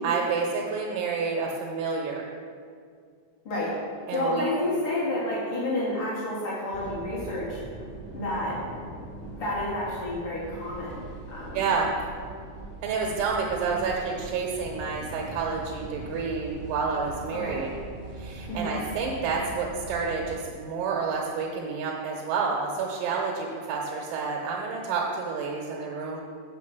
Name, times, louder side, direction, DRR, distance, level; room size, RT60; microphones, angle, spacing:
voice 1, 0.0-2.3 4.1-4.5 11.5-11.9 12.8-17.7 18.2-26.2, right 5 dB, 75° right, -1 dB, 2.9 m, -29 dB
voice 2, 4.1-7.6 8.1-8.6 9.3-11.7 17.3-17.6 18.5-18.7, left 1 dB, 75° left, -7 dB, 1.3 m, -30 dB
sound 1, 6.7-20.4, right 2 dB, 35° right, 1.5 m, -41 dB
7.1 x 6.2 x 6.0 m, 2.1 s
omnidirectional pair, 5.0 m